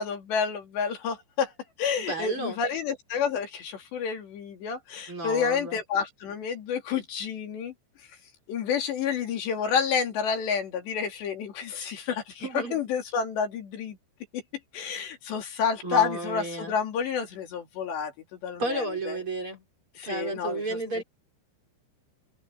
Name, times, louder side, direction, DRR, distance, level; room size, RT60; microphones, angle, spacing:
voice 1, 0.0-1.5 1.8-7.7 8.5-14.0 14.3-14.4 14.7-18.1 18.4-19.2 20.0-21.0, left 6 dB, 70° left, 5.0 m, -29 dB
voice 2, 2.0-2.6 5.1-5.8 12.4-12.8 15.8-16.8 18.6-19.6 20.0-21.0, right 2 dB, 30° right, 5.5 m, -32 dB
omnidirectional pair, 5.2 m